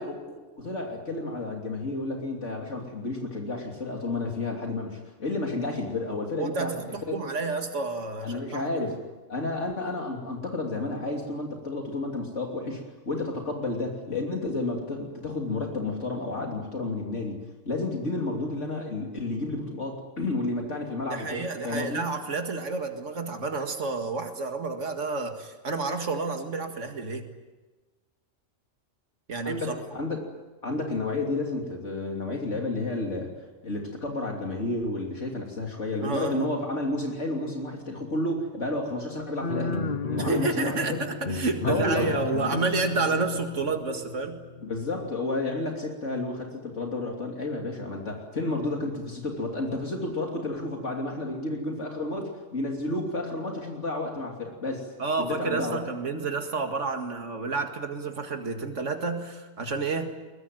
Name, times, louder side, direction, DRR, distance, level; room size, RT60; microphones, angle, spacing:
voice 1, 0.0-7.3 8.2-9.0 9.3-22.1 29.4-30.2 30.6-33.3 33.6-39.8 40.0-41.0 41.6-42.1 44.6-54.9 55.2-55.8, left 2 dB, 75° left, 1 dB, 3.4 m, -31 dB
voice 2, 6.4-8.9 21.1-27.3 29.3-29.8 36.0-36.5 40.2-44.4 55.0-60.3, right 4 dB, 85° right, 5 dB, 2.3 m, -30 dB
sound 1, 39.4-44.7, left 4 dB, 45° left, 1.1 m, -32 dB
22.0 x 22.0 x 9.4 m, 1.2 s
omnidirectional pair, 1.2 m